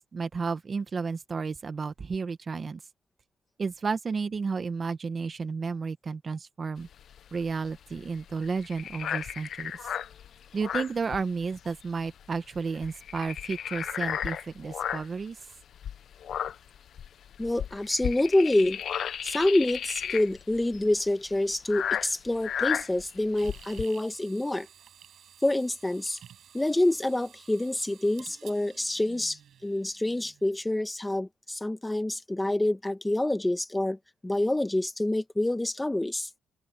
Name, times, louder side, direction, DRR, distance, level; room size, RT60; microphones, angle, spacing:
voice 1, 0.1-2.8 3.6-6.9 7.3-9.7 10.5-15.4, right 5 dB, 40° right, 1.3 m, -32 dB
sound 1, 6.8-11.8 12.0-12.2 12.6-15.2 15.7-23.9, left 9 dB, 65° left, 0.8 m, -34 dB
voice 2, 17.4-18.8 19.2-24.7 25.4-26.2 26.5-34.0 34.2-36.3, left 1 dB, 10° left, 1.7 m, -27 dB
sound 2, 23.4-30.6, right 9 dB, 65° right, 6.2 m, -53 dB
cardioid pair, 90°, 0 cm